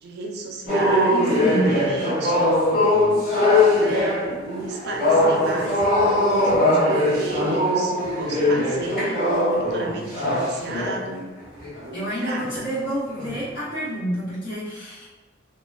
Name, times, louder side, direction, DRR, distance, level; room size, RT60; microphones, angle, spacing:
voice 1, 0.0-2.6 3.5-11.3 11.8-12.7, right 2 dB, 60° right, 1 dB, 0.4 m, -33 dB
sound 1, 0.7-11.0 11.6-11.8 12.4-12.7 13.1-13.4, left 1 dB, 45° left, 1.3 m, -21 dB
voice 2, 1.1-1.8 11.9-15.1, equal, 65° left, -10 dB, 1.2 m, -28 dB
2.8 x 2.1 x 2.3 m, 1.3 s
head